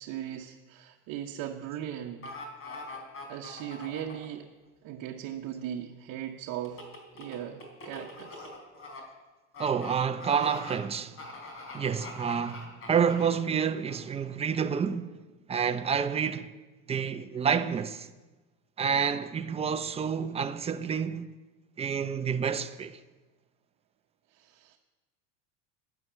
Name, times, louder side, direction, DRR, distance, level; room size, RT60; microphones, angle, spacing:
voice 1, 0.0-2.3 3.3-4.5 4.8-6.8 7.1-8.5 24.3-24.8, right 10 dB, 55° right, 1.1 m, -38 dB
sound 1, 2.2-4.3 6.6-9.0 9.5-9.9 10.2-10.8 11.2-13.4 13.9-14.0, left 2 dB, 35° left, 3.8 m, -43 dB
voice 2, 9.6-11.2 11.7-15.2 15.5-16.5 16.9-18.1 18.8-21.3 21.8-23.0, right 7 dB, 15° right, 0.6 m, -29 dB
11.0 x 10.0 x 8.1 m
supercardioid pair, 125°, 38 cm